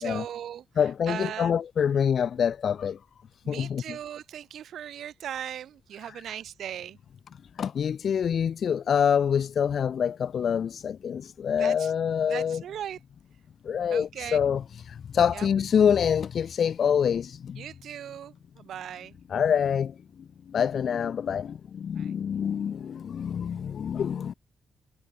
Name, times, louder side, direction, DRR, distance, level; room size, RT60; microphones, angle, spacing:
voice 1, 0.0-0.6 1.1-1.6 3.4-7.0 11.6-11.9 12.2-13.0 13.9-14.4 15.3-15.5 17.6-19.2 22.0-22.1, right 10 dB, 75° right, 2.1 m, -38 dB
voice 2, 0.8-3.0 3.5-4.0 6.0-6.2 7.5-12.6 13.6-17.7 19.3-24.3, left 8 dB, 50° left, 1.7 m, -26 dB
wide cardioid pair, 175°, 0 cm